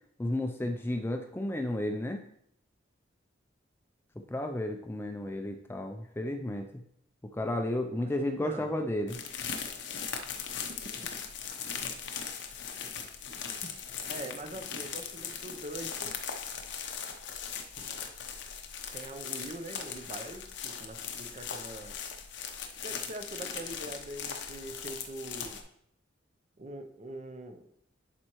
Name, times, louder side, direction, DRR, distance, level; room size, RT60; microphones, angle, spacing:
voice 1, 0.2-2.2 4.3-6.7 7.3-9.2, left 1 dB, 10° left, 5 dB, 0.4 m, -32 dB
voice 2, 8.0-8.8 10.7-10.8 14.1-16.2 17.8-17.9 18.9-22.0 22.8-25.6 26.6-27.6, right 1 dB, 35° right, 7 dB, 0.6 m, -43 dB
sound 1, 9.1-25.6, left 7 dB, 60° left, 0.8 m, -39 dB
11.0 x 4.3 x 3.0 m, 0.71 s
head